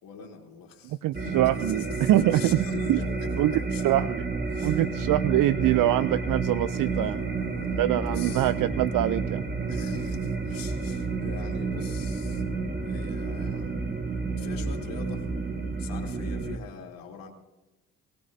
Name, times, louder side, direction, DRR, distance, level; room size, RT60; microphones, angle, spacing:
voice 1, 0.0-3.8 4.5-4.8 6.8-8.5 9.7-12.4 12.8-13.8 14.4-15.3 15.8-17.3, left 6 dB, 75° left, -1 dB, 3.0 m, -43 dB
voice 2, 0.8-3.0 3.4-3.5 3.8-4.2 4.6-7.2 7.7-9.4, right 14 dB, 65° right, 15 dB, 0.5 m, -24 dB
sound 1, 1.1-16.6, right 4 dB, 25° right, 1.6 m, -30 dB
24.0 x 16.0 x 2.7 m, 1.0 s
supercardioid pair, 60°, 35 cm